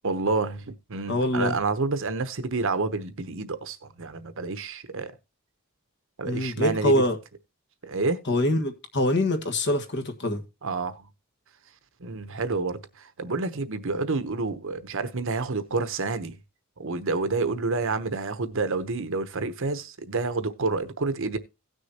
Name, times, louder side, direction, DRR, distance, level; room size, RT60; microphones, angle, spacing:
voice 1, 0.0-5.1 6.2-7.0 7.8-8.2 10.6-11.1 12.0-16.4 16.8-21.4, right 3 dB, 65° right, 0.9 m, -29 dB
voice 2, 1.1-1.5 6.2-7.2 8.3-10.4, left 1 dB, 55° left, 1.6 m, -24 dB
17.0 x 6.4 x 2.9 m
head